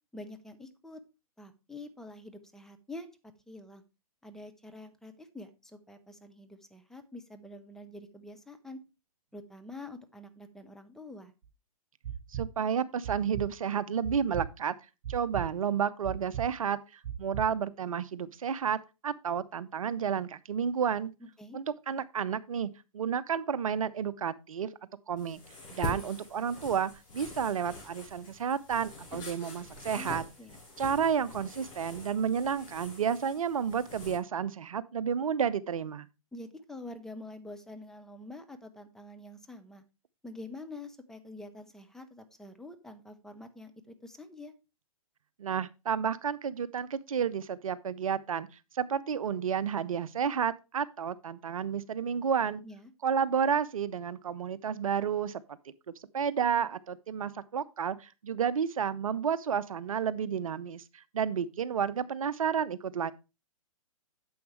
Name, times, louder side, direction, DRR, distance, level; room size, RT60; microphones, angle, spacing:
voice 1, 0.1-1.0 1.4-3.1 3.5-3.8 4.2-8.8 9.3-11.3 21.2-21.6 29.9-30.6 36.3-39.8 40.2-44.5 52.6-52.9, left 2 dB, 5° left, 0.7 m, -46 dB
sound 1, 11.4-11.5 12.0-12.5 13.0-13.5 14.0-14.5 15.0-15.5 16.0-16.5 17.0-17.4, right 10 dB, 45° right, 1.4 m, -36 dB
voice 2, 12.3-14.7 15.1-16.8 17.2-21.1 21.5-22.7 22.9-24.7 25.1-25.4 25.7-30.2 30.8-36.1 45.4-48.5 48.7-52.6 53.0-55.6 56.1-63.1, right 7 dB, 70° right, 0.6 m, -31 dB
sound 2, 25.2-34.2, left 2 dB, 25° left, 5.1 m, -44 dB
9.4 x 7.1 x 3.2 m
figure-of-eight pair, 120°, 18 cm